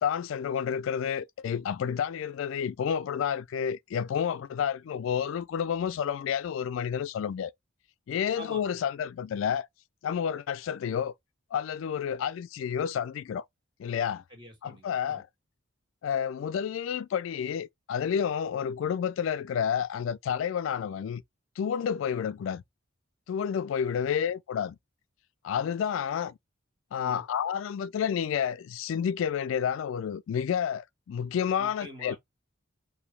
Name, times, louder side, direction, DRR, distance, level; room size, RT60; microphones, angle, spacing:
voice 1, 0.0-7.5 8.1-9.7 10.0-11.1 11.5-13.4 13.8-14.2 14.6-15.2 16.0-21.2 21.6-22.6 23.3-24.8 25.4-26.3 26.9-32.2, left 8 dB, 70° left, 0.3 m, -30 dB
voice 2, 14.3-15.3 22.1-22.3 23.8-24.1 27.0-27.3 31.6-32.2, equal, 25° right, 1.8 m, -47 dB
5.0 x 2.7 x 3.2 m
head